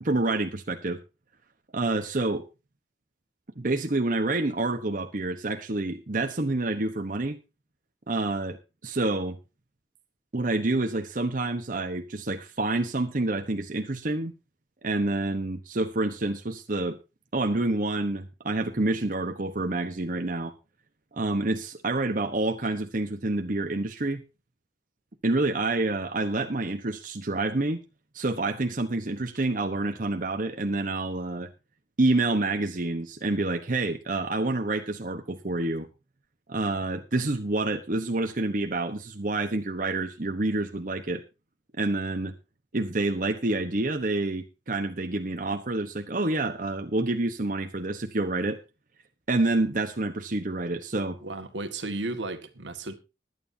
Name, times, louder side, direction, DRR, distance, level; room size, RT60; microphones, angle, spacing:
voice 1, 0.0-1.0 1.7-2.4 3.6-7.4 8.1-8.6 8.8-9.4 10.3-14.3 14.8-17.0 17.3-20.5 21.1-24.2 25.2-27.8 28.1-31.5 32.0-35.9 36.5-41.2 41.8-42.3 42.7-48.6 49.3-51.2, right 2 dB, 45° right, 1.0 m, -28 dB
voice 2, 51.2-52.9, right 2 dB, 80° right, 1.8 m, -34 dB
20.5 x 9.3 x 2.7 m
head